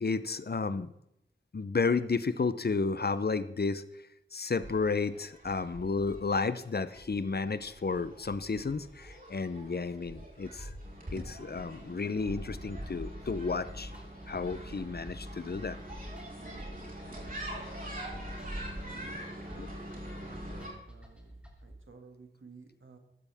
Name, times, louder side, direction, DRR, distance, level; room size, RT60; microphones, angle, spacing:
voice 1, 0.0-0.9 1.5-3.8 4.3-10.7 11.1-13.9 14.3-15.8 19.5-19.7, left 4 dB, 55° left, 14 dB, 0.8 m, -32 dB
sound 1, 4.6-20.7, right 1 dB, 45° right, 4.1 m, -44 dB
sound 2, 12.8-21.7, left 1 dB, 5° right, 3.1 m, -47 dB
voice 2, 18.9-19.7 20.2-23.0, right 4 dB, 80° right, 4 dB, 2.3 m, -55 dB
15.0 x 12.5 x 3.6 m, 0.83 s
wide cardioid pair, 70°, 20 cm